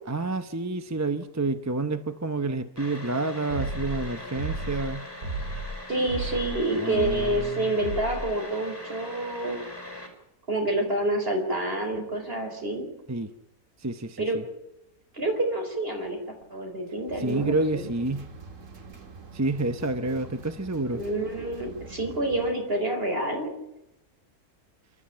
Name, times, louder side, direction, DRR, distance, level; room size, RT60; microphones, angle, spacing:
voice 1, 0.1-5.0 6.7-7.6 13.1-13.3 13.8-14.4 17.2-18.3 19.3-21.0, right 2 dB, 15° right, 10 dB, 0.6 m, -29 dB
sound 1, 2.8-10.1, left 2 dB, 15° left, 4.4 m, -41 dB
sound 2, 3.5-4.0 4.4-4.9 5.2-5.7 6.1-6.5 6.9-7.4 7.8-8.2, right 3 dB, 75° right, 3.9 m, -33 dB
voice 2, 5.9-9.7 10.5-12.9 14.2-14.4 15.1-17.9 20.9-23.5, right 1 dB, 40° right, 3 dB, 4.8 m, -28 dB
sound 3, 17.1-22.5, right 4 dB, 55° right, 2.1 m, -45 dB
28.0 x 12.5 x 8.7 m, 0.86 s
omnidirectional pair, 1.6 m